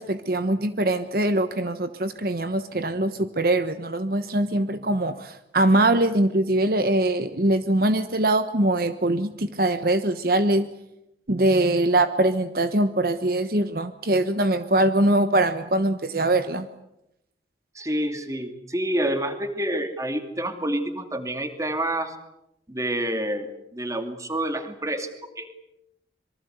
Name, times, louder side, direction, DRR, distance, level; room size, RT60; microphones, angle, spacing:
voice 1, 0.0-10.7 11.3-16.7, right 1 dB, 55° right, 10 dB, 1.1 m, -22 dB
voice 2, 17.7-22.2 22.7-25.1 25.4-25.5, right 1 dB, 15° right, 7 dB, 2.5 m, -28 dB
26.0 x 23.5 x 8.1 m, 0.87 s
head